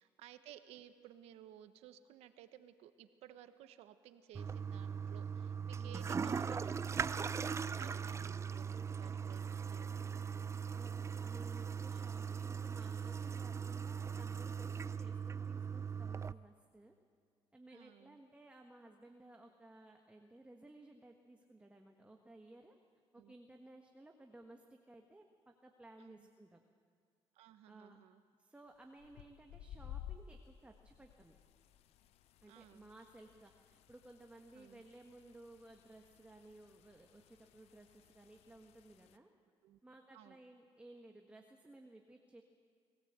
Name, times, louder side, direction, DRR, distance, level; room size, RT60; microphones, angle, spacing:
voice 1, 0.0-7.2 7.5-10.2 17.7-18.2 23.2-23.3 26.0-26.3 27.3-28.2 32.5-32.9 34.5-34.8 39.6-39.8 40.1-40.4, right 11 dB, 85° right, 10 dB, 1.1 m, -58 dB
Toilet flush, 4.3-16.3, right 6 dB, 25° right, 0.5 m, -40 dB
voice 2, 5.8-6.2 10.7-10.9 11.2-16.9 17.5-22.8 23.1-26.6 27.7-28.0 28.4-31.4 32.4-39.3 39.8-42.4, right 2 dB, 10° right, 2 dB, 1.5 m, -58 dB
sound 1, 29.0-39.2, left 10 dB, 80° left, 0.8 m, -56 dB
21.0 x 17.0 x 8.0 m, 2.1 s
cardioid pair, 90°, 10 cm